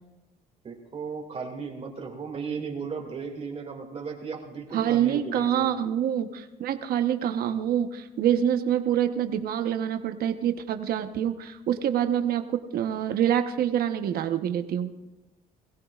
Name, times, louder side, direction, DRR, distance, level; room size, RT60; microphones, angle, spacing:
voice 1, 0.6-5.7, right 5 dB, 35° right, 1 dB, 2.4 m, -35 dB
voice 2, 4.7-14.9, right 10 dB, 65° right, 7 dB, 1.1 m, -26 dB
22.0 x 16.0 x 2.5 m, 1.0 s
cardioid pair, 110°, 17 cm